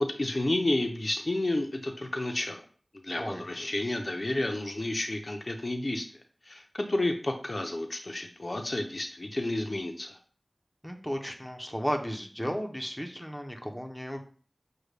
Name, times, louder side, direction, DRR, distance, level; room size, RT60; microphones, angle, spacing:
voice 1, 0.0-2.6 2.9-6.1 6.5-10.2, left 1 dB, 50° left, 4 dB, 0.5 m, -31 dB
voice 2, 10.8-14.2, equal, ahead, 3 dB, 0.6 m, -34 dB
6.3 x 2.2 x 3.2 m, 0.43 s
wide cardioid pair, 50°, 0 cm